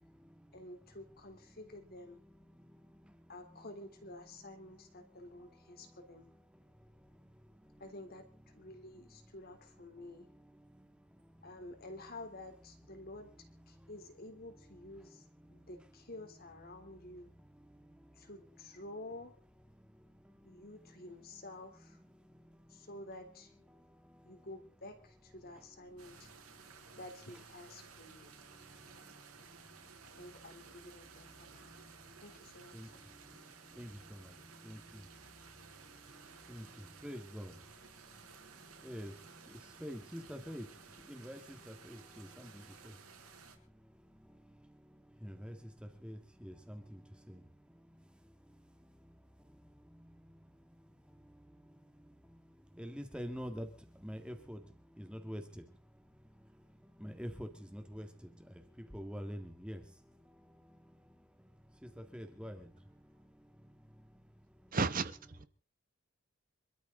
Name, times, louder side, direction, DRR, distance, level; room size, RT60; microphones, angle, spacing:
voice 1, 0.0-0.6 2.2-3.3 5.0-6.0 6.5-7.8 10.0-11.5 13.7-13.9 15.1-15.7 17.4-18.3 19.7-21.0 22.1-22.9 23.7-24.5 25.6-25.7 26.0-27.0 28.0-30.3 30.7-30.8 31.1-32.2 32.7-64.8, equal, 5° right, 6 dB, 2.2 m, -50 dB
voice 2, 0.5-2.2 3.3-6.3 7.8-10.3 11.4-15.2 15.5-17.3 18.1-19.4 20.4-22.0 22.7-23.6 24.2-26.3 27.0-28.4 30.0-31.7 32.2-33.0, left 1 dB, 45° left, 6 dB, 3.5 m, -50 dB
sound 1, 26.0-43.6, right 6 dB, 80° right, 5.1 m, -56 dB
voice 3, 64.7-65.5, right 4 dB, 40° right, 13 dB, 0.9 m, -33 dB
26.5 x 13.5 x 4.0 m, 0.39 s
head